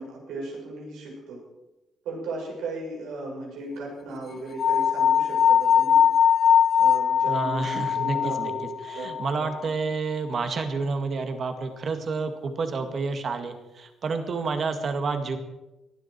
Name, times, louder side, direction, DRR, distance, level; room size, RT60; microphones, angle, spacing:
voice 1, 0.0-1.4 2.0-6.0 6.8-8.6 8.9-9.5, right 2 dB, 90° right, -2 dB, 6.3 m, -36 dB
sound 1, 4.6-9.7, left 8 dB, 55° left, 0.6 m, -21 dB
voice 2, 7.3-8.5 8.8-15.4, right 4 dB, 50° right, 6 dB, 2.1 m, -29 dB
19.0 x 12.5 x 4.7 m, 0.99 s
cardioid pair, 90°, 0 cm